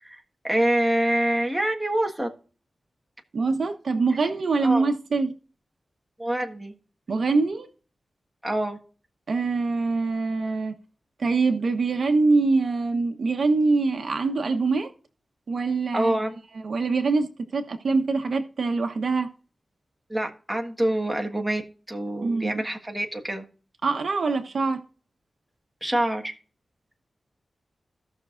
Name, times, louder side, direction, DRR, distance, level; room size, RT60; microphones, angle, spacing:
voice 1, 0.0-2.3 4.6-4.9 6.2-6.7 8.4-8.8 15.9-16.4 20.1-21.6 21.9-23.4 25.8-26.3, right 1 dB, 5° right, 1.5 m, -26 dB
voice 2, 3.3-5.3 7.1-7.7 9.3-10.7 11.2-14.9 15.5-16.2 16.6-19.3 22.2-22.6 23.8-24.8, right 3 dB, 60° right, 1.1 m, -24 dB
16.5 x 6.1 x 2.5 m
wide cardioid pair, 125°, 0 cm